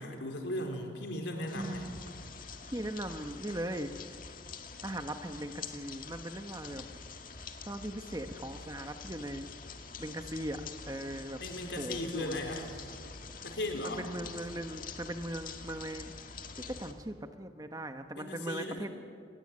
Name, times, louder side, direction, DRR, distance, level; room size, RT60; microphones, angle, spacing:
voice 1, 0.0-1.9 11.4-12.7 13.4-14.0 18.1-18.9, left 1 dB, 75° left, 3 dB, 4.2 m, -37 dB
sound 1, 1.5-16.9, left 5 dB, 50° left, 1.8 m, -46 dB
voice 2, 1.5-2.2 2.7-3.9 4.8-6.8 7.6-9.5 10.0-10.6 10.9-11.4 11.7-12.4 13.8-16.1 16.7-18.9, right 1 dB, 20° right, 7 dB, 1.1 m, -39 dB
28.0 x 20.5 x 8.8 m, 2.4 s
head